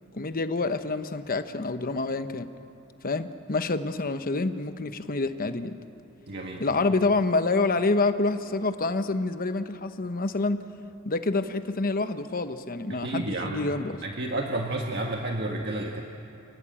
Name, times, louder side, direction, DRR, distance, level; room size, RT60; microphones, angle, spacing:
voice 1, 0.1-2.5 3.0-5.7 6.6-10.6 11.0-14.0, left 3 dB, 45° left, 10 dB, 1.0 m, -27 dB
voice 2, 6.3-6.6 12.9-13.7 14.0-16.0, right 2 dB, 55° right, 1 dB, 1.5 m, -31 dB
28.0 x 18.5 x 8.9 m, 2.9 s
head